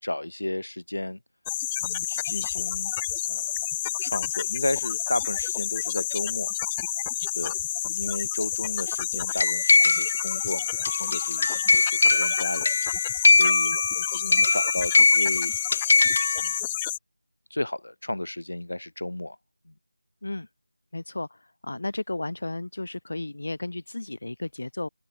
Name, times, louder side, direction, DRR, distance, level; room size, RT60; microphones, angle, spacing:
voice 1, 0.0-1.2 1.8-2.9 3.2-3.6 4.0-6.5 7.3-15.5 16.4-16.5 17.5-19.4, left 1 dB, 75° left, 2.9 m, -33 dB
sound 1, 1.5-17.0, left 12 dB, 10° left, 0.4 m, -30 dB
sound 2, 9.4-16.6, left 3 dB, 25° left, 1.4 m, -22 dB
voice 2, 20.9-21.3 21.6-24.9, left 2 dB, 45° left, 4.9 m, -33 dB
open air
figure-of-eight pair, 180°, 0 cm